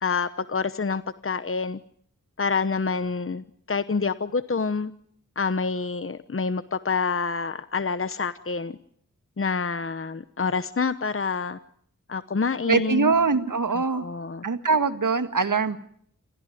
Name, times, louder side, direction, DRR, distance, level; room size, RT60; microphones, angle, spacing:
voice 1, 0.0-1.8 2.4-4.9 5.4-8.8 9.4-11.6 12.1-13.1 13.7-14.4, left 4 dB, 40° left, 13 dB, 1.0 m, -27 dB
voice 2, 12.7-14.1 14.4-15.8, right 4 dB, 75° right, 9 dB, 1.9 m, -23 dB
28.0 x 15.0 x 9.3 m, 0.65 s
wide cardioid pair, 45°, 32 cm